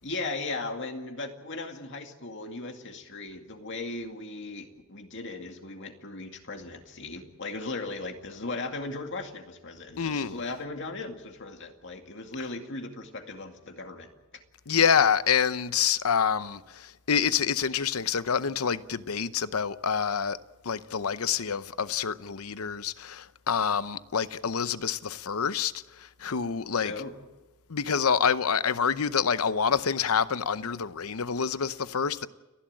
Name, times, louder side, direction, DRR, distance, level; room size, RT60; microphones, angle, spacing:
voice 1, 0.0-14.1 26.8-27.1, left 3 dB, 60° left, 2.3 m, -37 dB
voice 2, 10.0-10.4 14.7-20.4 20.6-26.9 27.7-32.3, left 7 dB, 90° left, 0.8 m, -27 dB
30.0 x 11.5 x 8.9 m
head